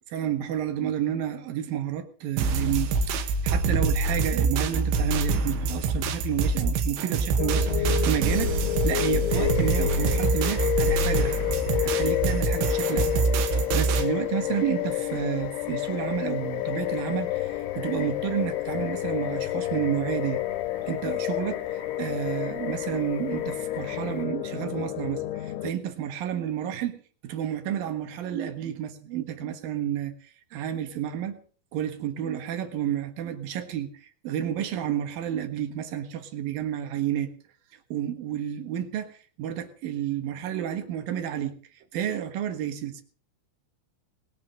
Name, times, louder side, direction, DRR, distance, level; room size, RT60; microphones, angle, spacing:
voice 1, 0.1-8.5 8.8-11.5 11.8-13.1 13.5-20.4 20.9-30.1 30.5-31.4 31.7-33.9 34.2-37.3 37.9-41.6 41.9-43.0, right 10 dB, 65° right, 2.6 m, -30 dB
sound 1, 2.4-14.1, right 4 dB, 80° right, 3.9 m, -25 dB
sound 2, 7.4-25.7, left 13 dB, 80° left, 3.2 m, -29 dB
sound 3, 9.3-24.3, left 8 dB, 55° left, 2.2 m, -45 dB
20.5 x 9.8 x 6.6 m
omnidirectional pair, 5.5 m